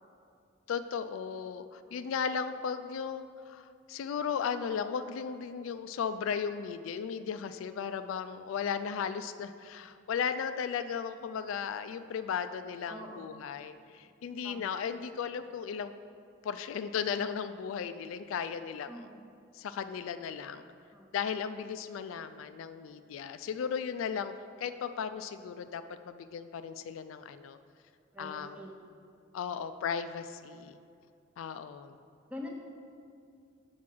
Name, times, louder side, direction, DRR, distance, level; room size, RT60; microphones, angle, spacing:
voice 1, 0.7-15.9 16.4-19.0 19.5-20.6 21.1-27.6 28.2-28.6 29.3-30.8 31.4-32.0, left 7 dB, 80° left, 11 dB, 0.3 m, -36 dB
voice 2, 12.9-13.3 14.4-14.8 18.9-19.2 20.9-21.1 28.1-28.8 32.3-32.5, left 1 dB, 5° right, -1 dB, 0.7 m, -45 dB
6.1 x 4.6 x 6.0 m, 2.4 s
head